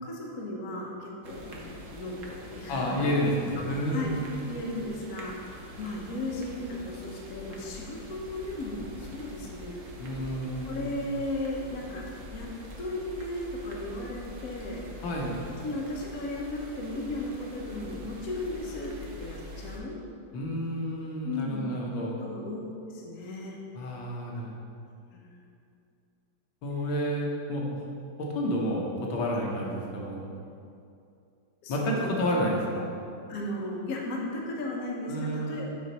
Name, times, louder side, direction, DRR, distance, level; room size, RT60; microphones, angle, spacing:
voice 1, 0.0-3.1 3.5-4.1 4.5-9.8 10.6-12.0 12.3-12.5 12.8-14.8 15.6-19.9 21.2-21.7 22.2-22.6 22.8-23.6 25.1-25.3 29.3-29.4 31.6-32.3 33.3-35.7, left 1 dB, 55° left, -2 dB, 1.2 m, -36 dB
sound 1, 1.2-19.8, left 1 dB, 55° right, 0.9 m, -45 dB
voice 2, 2.7-4.4 10.0-10.9 15.0-15.4 20.3-22.2 23.7-24.6 26.6-27.8 28.2-30.2 31.7-32.9 35.1-35.7, equal, 70° left, -2 dB, 1.7 m, -30 dB
7.6 x 3.9 x 5.4 m, 2.5 s
omnidirectional pair, 2.3 m